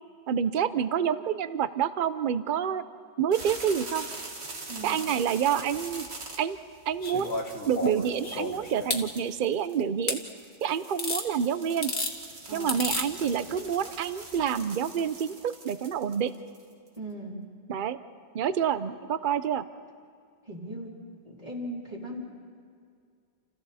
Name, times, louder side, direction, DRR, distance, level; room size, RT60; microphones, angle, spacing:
voice 1, 0.3-2.8 3.2-4.1 4.8-6.1 6.4-6.6 6.9-7.4 7.7-10.2 10.6-11.9 12.5-16.3 17.7-18.0 18.3-19.6, right 8 dB, 55° right, 13 dB, 0.8 m, -28 dB
sound 1, 3.3-17.0, right 3 dB, 80° right, 2.2 m, -43 dB
sound 2, 7.0-9.0 10.1-10.2 11.0-11.3 11.7-12.1 12.7-13.1 14.3-14.4, left 3 dB, 85° left, 2.1 m, -31 dB
voice 2, 12.5-12.9 17.0-17.5 20.4-20.9 21.2-22.2, right 1 dB, 35° right, -5 dB, 3.4 m, -38 dB
29.5 x 28.5 x 4.2 m, 2.3 s
omnidirectional pair, 1.1 m